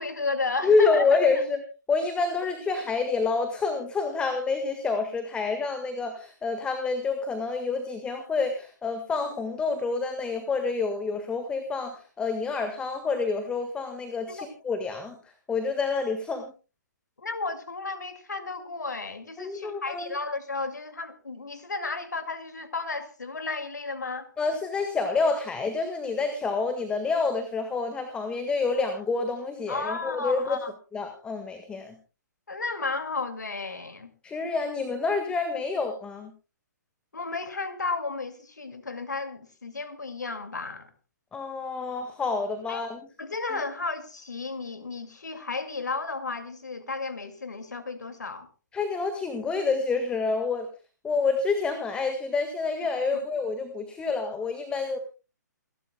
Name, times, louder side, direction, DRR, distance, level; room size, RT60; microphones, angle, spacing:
voice 1, 0.0-1.2 14.3-14.5 17.2-24.3 29.7-30.7 32.5-34.1 37.1-40.9 42.7-42.9 43.2-48.5 53.1-53.2, left 3 dB, 70° left, 2.2 m, -33 dB
voice 2, 0.6-1.6 1.9-15.2 15.5-16.5 19.4-20.2 24.4-30.6 30.9-31.9 34.2-36.3 41.3-43.0 48.7-50.7 51.0-55.0, left 4 dB, 10° left, 1.5 m, -28 dB
28.0 x 12.5 x 2.2 m
figure-of-eight pair, 125°, 10 cm